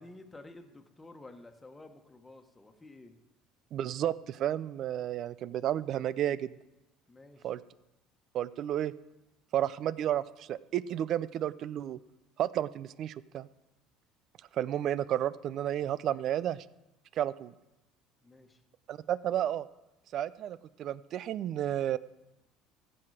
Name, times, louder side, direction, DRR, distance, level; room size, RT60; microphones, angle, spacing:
voice 1, 0.0-3.2 7.1-7.5 18.2-18.6, left 2 dB, 15° left, 5 dB, 1.4 m, -51 dB
voice 2, 3.7-6.5 7.4-7.6 8.3-8.9 9.5-12.0 12.4-13.5 14.5-16.6 17.2-17.5 18.9-19.6 20.1-22.0, right 11 dB, 55° right, 18 dB, 0.5 m, -32 dB
15.5 x 7.8 x 5.0 m, 0.96 s
supercardioid pair, 105°, 0 cm